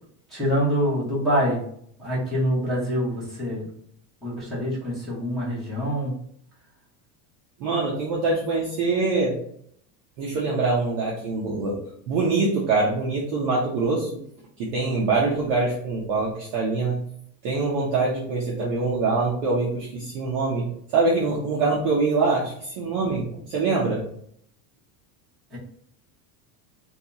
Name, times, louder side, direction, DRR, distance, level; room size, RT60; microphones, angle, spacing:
voice 1, 0.3-1.6 2.0-3.7 4.2-6.2 25.5-25.6, equal, ahead, -10 dB, 0.7 m, -25 dB
voice 2, 7.6-9.3 10.2-11.8 12.1-14.1 14.6-17.0 17.4-20.6 20.9-24.0, right 3 dB, 35° right, -4 dB, 0.4 m, -24 dB
2.6 x 2.3 x 3.8 m, 0.66 s
cardioid pair, 180°, 46 cm